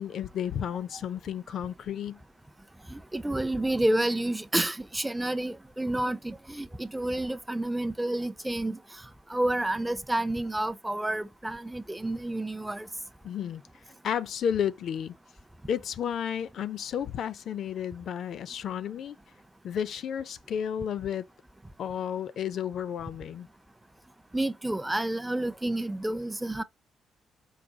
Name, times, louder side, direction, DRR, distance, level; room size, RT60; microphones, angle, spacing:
voice 1, 0.0-2.2 13.2-13.6 14.0-15.1 15.7-19.2 19.6-21.3 21.8-23.5, left 9 dB, 65° left, 0.4 m, -32 dB
voice 2, 2.9-8.8 9.3-12.9 24.3-26.6, right 1 dB, 10° right, 0.4 m, -29 dB
4.7 x 2.3 x 3.8 m
cardioid pair, 90°, 0 cm